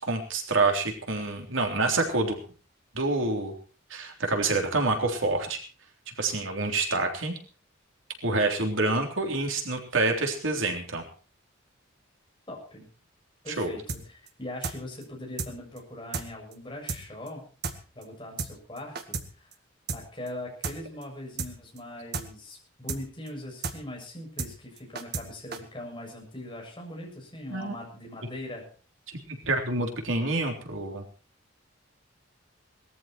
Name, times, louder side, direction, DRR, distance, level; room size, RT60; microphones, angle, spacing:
voice 1, 0.0-2.4 2.9-3.5 3.9-5.6 6.2-7.4 8.2-11.0 13.6-13.7 27.5-27.8 29.1-31.0, right 3 dB, 75° right, 3 dB, 3.6 m, -27 dB
voice 2, 12.5-12.8 13.4-19.5 19.9-28.6, left 1 dB, 25° left, 0 dB, 7.2 m, -41 dB
sound 1, 13.9-14.0 14.3-14.4 14.6-14.8 15.0-15.1 15.4-15.5 15.8-15.9 16.1-16.3 16.5-16.6 16.9-17.0 17.3-17.4 17.6-17.8 18.0-18.1 18.4-18.5 18.8-19.3 19.5-19.6 19.9-20.0 20.3-20.4 20.6-20.8 21.0-21.1 21.4-21.5 21.8-21.9 22.1-22.3 22.5-22.6 22.9-23.0 23.3-23.4 23.6-23.8 24.0-24.1 24.4-24.5 24.8-25.3 25.5-25.6, right 4 dB, 50° right, 1.9 m, -32 dB
19.5 x 14.0 x 4.5 m, 0.39 s
head